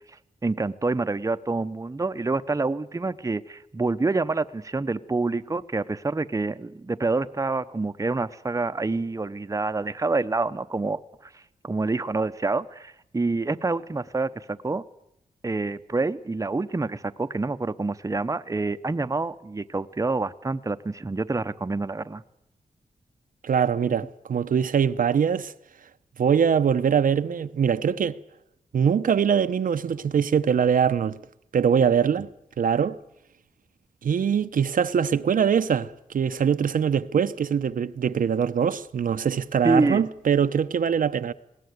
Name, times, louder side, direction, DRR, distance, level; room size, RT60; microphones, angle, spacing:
voice 1, 0.4-14.8 15.4-22.2 39.6-40.0, right 3 dB, 25° right, 0.8 m, -27 dB
voice 2, 23.4-25.5 26.2-28.2 28.7-31.2 31.5-32.3 32.6-33.0 34.0-41.3, right 7 dB, 75° right, 0.8 m, -23 dB
20.0 x 17.5 x 9.4 m
wide cardioid pair, 85°, 14 cm